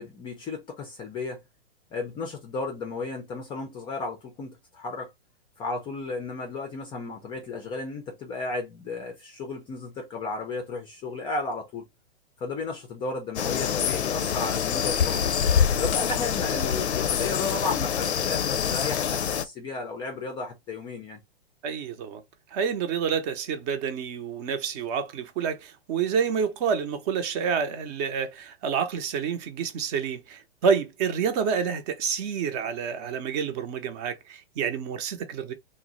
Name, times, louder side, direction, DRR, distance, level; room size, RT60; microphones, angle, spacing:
voice 1, 0.0-1.4 1.9-5.1 5.6-11.9 12.4-15.4 15.8-21.2, left 3 dB, 15° left, 0.4 m, -34 dB
sound 1, 13.4-19.5, left 8 dB, 85° left, 0.5 m, -25 dB
voice 2, 21.6-22.2 22.5-35.5, right 6 dB, 40° right, 0.7 m, -28 dB
2.6 x 2.0 x 3.8 m
hypercardioid pair, 120°, 32 cm